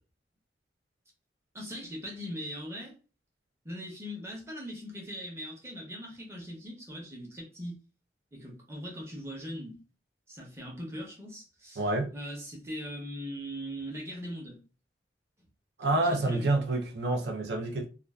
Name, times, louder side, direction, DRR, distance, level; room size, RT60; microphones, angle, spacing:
voice 1, 1.5-3.0 3.6-7.7 8.3-9.8 10.3-11.8 12.1-14.6 16.1-16.5, equal, 15° right, 0.7 m, -40 dB
voice 2, 11.8-12.1 15.8-17.8, right 2 dB, 65° right, 0.4 m, -28 dB
2.5 x 2.3 x 2.2 m
head